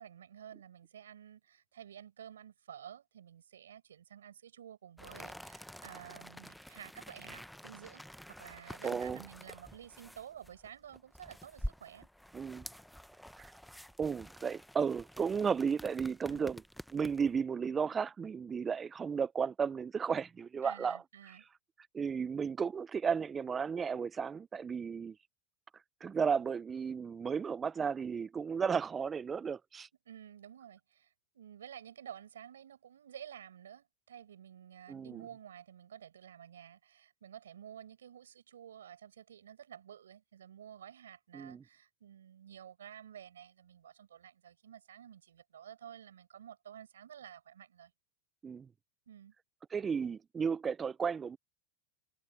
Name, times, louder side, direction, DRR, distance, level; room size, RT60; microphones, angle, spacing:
voice 1, 0.0-12.1 16.3-16.5 20.6-21.5 30.1-47.9 49.1-49.3, right 9 dB, 90° right, 7.1 m, -52 dB
sound 1, 5.0-17.4, equal, ahead, 0.9 m, -48 dB
voice 2, 8.8-9.2 12.3-12.7 13.4-13.5 14.0-16.6 16.9-21.0 21.9-25.2 26.0-29.9 34.9-35.2 41.3-41.6 48.4-48.7 49.7-51.4, right 6 dB, 25° right, 0.5 m, -34 dB
hypercardioid pair, 105°, 0 cm